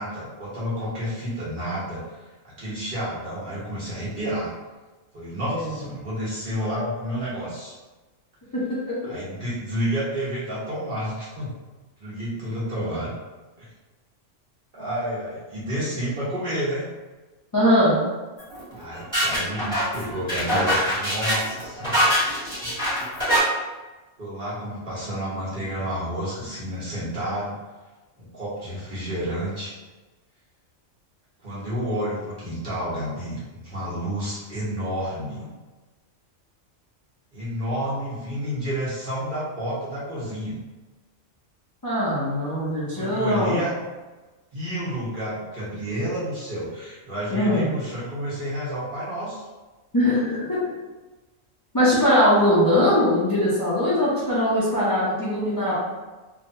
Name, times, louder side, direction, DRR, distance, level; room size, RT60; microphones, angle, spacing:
voice 1, 0.0-2.2 2.4-4.5 5.1-7.7 9.1-11.5 12.0-13.1 13.6-13.7 14.7-16.8 18.8-22.1 24.2-27.6 28.2-29.7 31.4-35.5 37.3-40.6 42.9-43.7 44.5-49.5, equal, 45° right, -9 dB, 1.2 m, -30 dB
voice 2, 8.5-9.1 17.5-18.0 41.8-43.6 47.3-47.7 49.9-50.7 51.7-55.7, left 1 dB, 30° left, -9 dB, 0.4 m, -21 dB
sound 1, 18.4-23.4, equal, 20° right, 1.5 m, -24 dB
3.0 x 2.2 x 2.6 m, 1.2 s
omnidirectional pair, 1.3 m